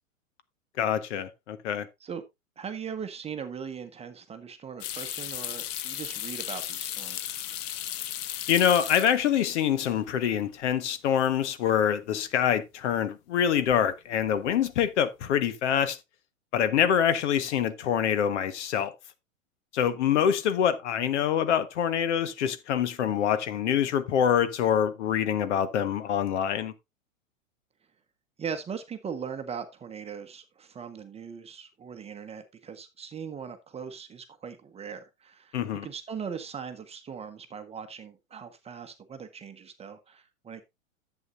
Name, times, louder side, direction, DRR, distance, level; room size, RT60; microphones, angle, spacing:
voice 1, 0.8-1.9 8.5-16.0 16.5-18.9 19.7-26.7 35.5-35.9, left 9 dB, 60° left, 1.3 m, -25 dB
voice 2, 2.6-7.4 28.4-40.6, right 7 dB, 15° right, 1.1 m, -39 dB
sound 1, 4.8-9.5 9.8-10.4 10.7-10.8 13.5-13.9 14.2-14.7, left 12 dB, 35° left, 1.0 m, -36 dB
11.0 x 8.2 x 2.6 m
hypercardioid pair, 110°, 40 cm